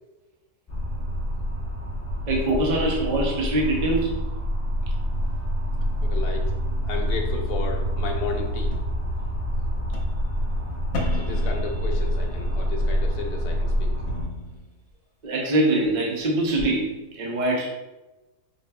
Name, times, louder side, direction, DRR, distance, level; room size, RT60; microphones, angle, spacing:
sound 1, 0.7-14.2, equal, 25° left, 0.3 m, -26 dB
voice 1, 2.3-4.2 15.2-17.7, right 1 dB, 55° right, -1 dB, 0.5 m, -23 dB
voice 2, 6.0-6.6 6.8-8.7 11.1-13.9, left 5 dB, 75° left, 2 dB, 1.1 m, -33 dB
sound 2, 6.0-7.4 8.7-8.9 9.8-10.3 10.7-12.6 13.9-14.9 15.8-15.9 16.6-16.7, left 1 dB, 55° left, 1.0 m, -35 dB
4.8 x 2.9 x 2.2 m, 1.1 s
omnidirectional pair, 1.7 m